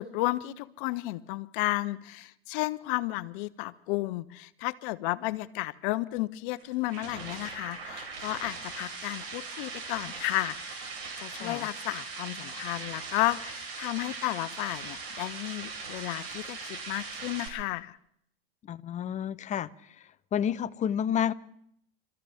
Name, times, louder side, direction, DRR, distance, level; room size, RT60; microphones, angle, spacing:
voice 1, 0.0-10.8 11.2-18.0, left 19 dB, 55° left, 15 dB, 0.8 m, -33 dB
sound 1, 6.5-17.5, right 4 dB, 70° right, 4.5 m, -40 dB
voice 2, 18.7-19.7 20.3-21.3, left 9 dB, 25° left, 16 dB, 0.6 m, -29 dB
29.0 x 14.0 x 3.5 m, 0.70 s
hypercardioid pair, 105°, 31 cm